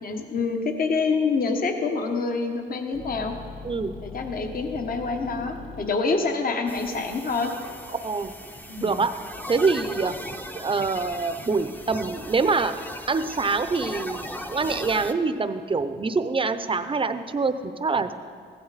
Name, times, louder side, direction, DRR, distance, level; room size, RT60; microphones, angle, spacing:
voice 1, 0.0-3.3 4.0-7.5 8.7-9.0, left 4 dB, 45° left, 4 dB, 1.3 m, -26 dB
sound 1, 2.9-8.1, left 4 dB, 75° left, 2.0 m, -42 dB
sound 2, 6.7-15.1, equal, 10° left, 0.8 m, -38 dB
voice 2, 8.0-8.3 8.8-9.1 9.5-12.7 13.1-18.1, right 4 dB, 25° right, 10 dB, 0.7 m, -25 dB
16.0 x 12.5 x 4.2 m, 2.1 s
cardioid pair, 90°, 20 cm